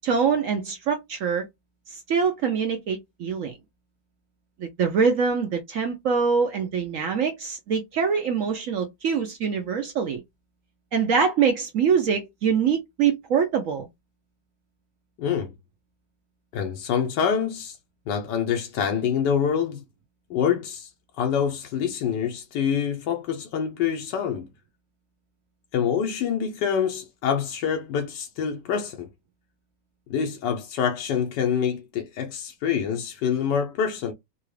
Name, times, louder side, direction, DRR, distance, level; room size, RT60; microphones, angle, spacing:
voice 1, 0.0-1.5 1.9-3.5 4.6-10.2 10.9-13.9, right 6 dB, 65° right, 0.8 m, -24 dB
voice 2, 15.2-15.5 16.5-17.8 18.1-19.8 20.3-20.9 21.2-24.5 25.7-29.1 30.1-34.1, left 7 dB, 85° left, 1.3 m, -26 dB
3.9 x 2.3 x 3.2 m
omnidirectional pair, 1.8 m